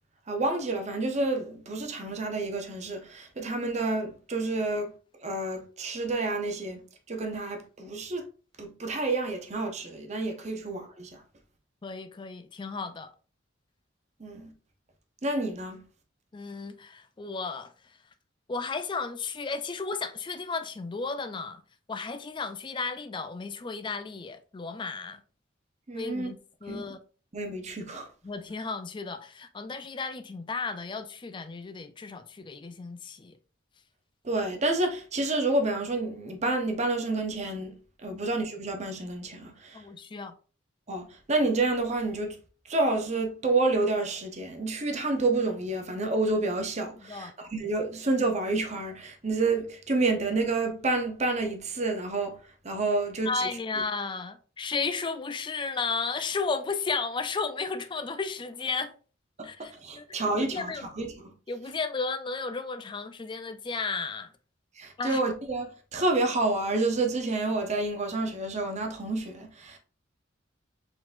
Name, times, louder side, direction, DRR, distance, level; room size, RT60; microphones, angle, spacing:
voice 1, 0.3-4.9 5.2-6.8 7.1-8.3 8.6-11.2 14.2-14.5 15.2-15.8 25.9-26.3 26.7-26.9 27.3-28.1 34.2-39.8 40.9-42.4 42.7-52.4 52.6-53.5 59.4-61.3 64.8-69.8, right 2 dB, 35° right, 0.8 m, -29 dB
voice 2, 11.8-13.1 16.3-17.7 18.5-21.6 21.9-25.2 25.9-27.0 28.2-33.4 38.1-38.2 39.7-40.3 47.0-47.3 53.3-58.9 59.4-60.9 61.5-64.3 65.0-65.2, left 4 dB, 25° left, 0.4 m, -34 dB
4.6 x 3.8 x 2.4 m
head